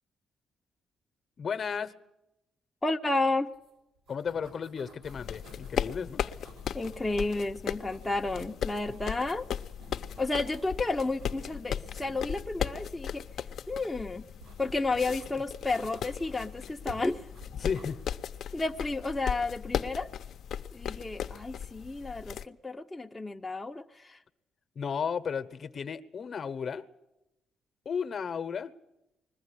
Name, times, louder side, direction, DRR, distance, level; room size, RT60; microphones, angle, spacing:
voice 1, 1.4-1.9 4.1-6.2 17.6-18.0 24.7-26.8 27.8-28.7, left 6 dB, 50° left, 12 dB, 1.0 m, -34 dB
voice 2, 2.8-3.5 6.7-9.5 10.2-13.2 13.7-14.2 14.6-17.3 18.5-20.1 20.7-24.2, left 2 dB, 15° left, 3 dB, 0.7 m, -31 dB
sound 1, 3.5-3.7 4.0-5.8 6.3-7.4 7.7-8.6 8.9-10.8 11.1-12.2 14.4-15.3 15.7-16.5 16.9-17.9 18.7-19.2, right 3 dB, 85° right, 6.1 m, -53 dB
sound 2, 5.0-22.4, left 9 dB, 65° left, 0.7 m, -37 dB
21.0 x 14.5 x 10.0 m, 0.92 s
cardioid pair, 90°, 0 cm